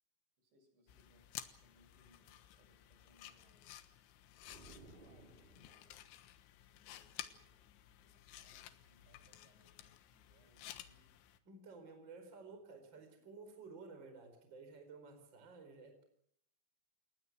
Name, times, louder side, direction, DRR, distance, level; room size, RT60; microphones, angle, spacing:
voice 1, 0.4-3.7 4.7-6.1 6.7-11.1 12.3-13.3, equal, 70° right, 3 dB, 9.4 m, -72 dB
sound 1, 0.9-11.4, left 12 dB, 85° left, 3.7 m, -54 dB
sound 2, 4.4-6.0, right 2 dB, 50° right, 0.6 m, -59 dB
voice 2, 11.4-16.0, right 4 dB, 25° right, 6 dB, 4.8 m, -54 dB
28.5 x 20.0 x 6.2 m, 0.68 s
omnidirectional pair, 5.4 m